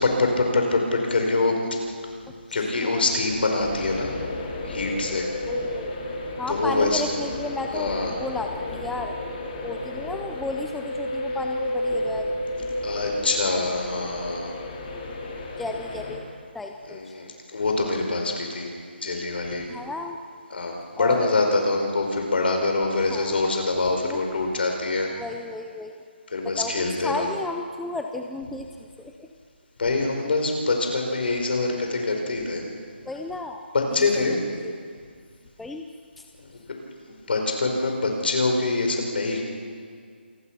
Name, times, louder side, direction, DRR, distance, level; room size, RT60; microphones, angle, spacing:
voice 1, 0.0-1.6 2.5-4.1 4.6-5.3 6.5-7.0 7.7-8.1 12.8-14.5 16.9-18.7 19.0-19.7 20.5-25.1 26.3-27.3 29.8-32.6 33.7-34.4 36.7-36.8 37.0-39.4, left 3 dB, 60° left, 2 dB, 4.9 m, -24 dB
voice 2, 2.5-3.1 5.5-5.9 6.4-9.2 9.6-12.7 15.6-17.1 19.7-20.2 21.0-21.4 23.1-23.4 23.9-24.2 25.1-26.0 26.4-28.7 29.0-29.3 33.1-33.6 33.9-34.4 34.6-34.8 35.6-35.9 36.2-36.3, left 2 dB, ahead, 4 dB, 0.5 m, -33 dB
sound 1, 3.6-16.2, left 1 dB, 25° left, 2.9 m, -32 dB
27.5 x 20.0 x 6.1 m, 2.1 s
hypercardioid pair, 165°, 6 cm